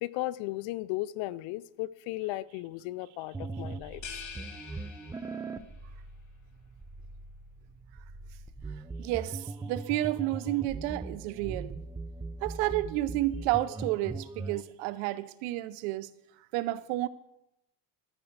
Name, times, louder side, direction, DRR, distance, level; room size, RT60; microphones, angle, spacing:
voice 1, 0.0-4.2, left 17 dB, 70° left, 0.6 m, -36 dB
sound 1, 3.3-14.6, right 3 dB, 10° right, 0.4 m, -40 dB
sound 2, 4.0-5.7, left 6 dB, 35° left, 1.5 m, -45 dB
voice 2, 9.0-11.7 12.4-16.1 16.5-17.1, right 16 dB, 90° right, 0.8 m, -31 dB
13.0 x 5.8 x 6.7 m
cardioid pair, 115°, 48 cm